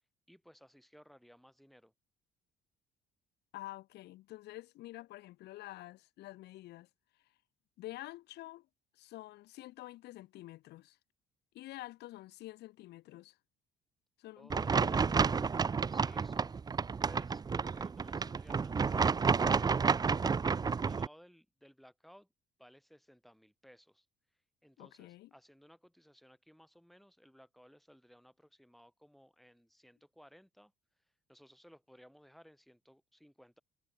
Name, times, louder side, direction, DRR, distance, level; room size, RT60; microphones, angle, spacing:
voice 1, 0.3-1.9 14.4-15.0 15.9-16.6 17.0-22.3 22.6-24.1 24.6-30.7 31.3-33.6, equal, ahead, 5.3 m, -60 dB
voice 2, 3.5-6.9 7.8-8.7 8.9-11.0 11.5-13.4 14.2-15.5 24.8-25.3, left 16 dB, 80° left, 4.9 m, -48 dB
sound 1, 14.5-21.1, right 5 dB, 25° right, 0.6 m, -30 dB
cardioid pair, 110°, 17 cm